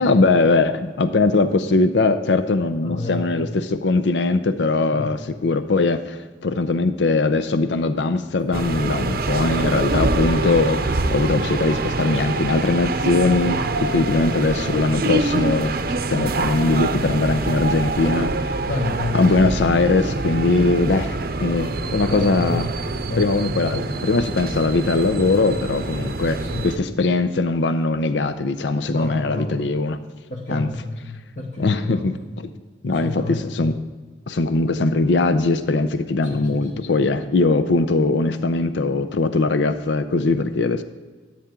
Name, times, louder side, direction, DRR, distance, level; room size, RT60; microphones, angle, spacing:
voice 1, 0.0-15.7 16.1-18.6 19.1-22.7 23.2-26.4 26.6-30.0 30.5-30.7 31.6-32.5 32.8-33.7 34.3-40.8, left 3 dB, 80° left, 10 dB, 0.6 m, -20 dB
voice 2, 2.8-3.3 4.9-5.1 14.3-14.4 18.7-19.2 22.1-22.7 23.0-23.3 26.4-26.7 28.9-29.6 30.3-32.1 33.0-33.5 36.2-36.8, left 2 dB, 45° left, 0 dB, 1.0 m, -30 dB
sound 1, 8.5-26.8, right 3 dB, 55° right, 0.6 m, -25 dB
13.0 x 8.8 x 3.7 m, 1.4 s
head